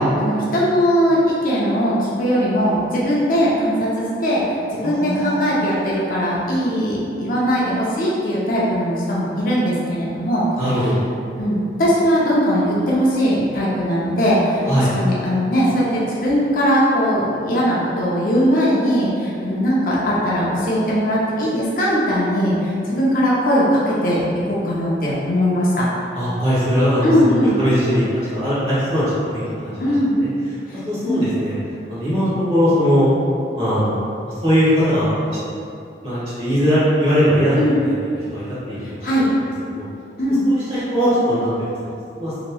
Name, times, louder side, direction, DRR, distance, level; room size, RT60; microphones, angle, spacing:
voice 1, 0.0-10.4 10.8-10.9 11.4-25.9 27.0-27.6 29.8-30.1 30.7-30.8 31.0-31.4 37.6-37.8 38.8-39.3 40.2-40.4, equal, 50° left, -6 dB, 0.5 m, -19 dB
voice 2, 4.8-5.6 10.6-11.0 14.7-14.9 26.1-27.1 27.6-29.0 29.3-29.9 30.2-30.3 30.8-31.5 31.9-33.1 33.5-34.1 34.4-35.3 36.0-37.6 37.8-37.9 38.3-39.1 39.7-39.8 40.5-41.5 41.8-41.9 42.2-42.3, equal, 35° right, -13 dB, 1.4 m, -20 dB
2.9 x 2.9 x 2.2 m, 2.6 s
head